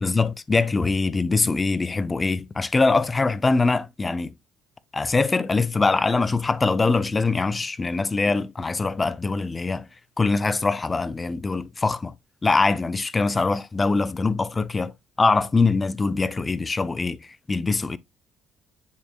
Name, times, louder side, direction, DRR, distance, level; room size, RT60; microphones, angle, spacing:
voice 1, 0.0-4.3 4.9-9.9 10.2-12.1 12.4-14.9 15.2-18.0, left 3 dB, 20° left, 0.6 m, -23 dB
10.0 x 4.4 x 2.4 m
cardioid pair, 110°, 0 cm